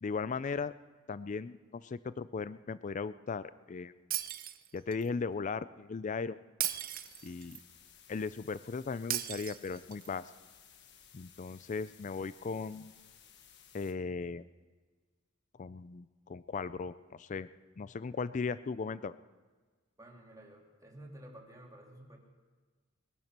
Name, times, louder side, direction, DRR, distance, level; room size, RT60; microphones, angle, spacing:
voice 1, 0.0-0.7 1.1-3.9 4.7-6.4 7.2-7.6 8.1-10.3 11.1-12.9 13.7-14.4 15.6-17.5 17.8-19.2, left 4 dB, 40° left, 16 dB, 0.4 m, -37 dB
Shatter, 4.1-5.1 6.6-7.6 9.1-10.1, right 12 dB, 45° right, 0.7 m, -37 dB
sound 1, 6.9-13.9, left 8 dB, 60° left, 1.4 m, -59 dB
voice 2, 20.0-22.2, right 1 dB, 15° right, -1 dB, 2.8 m, -52 dB
21.5 x 11.0 x 6.0 m, 1.4 s
head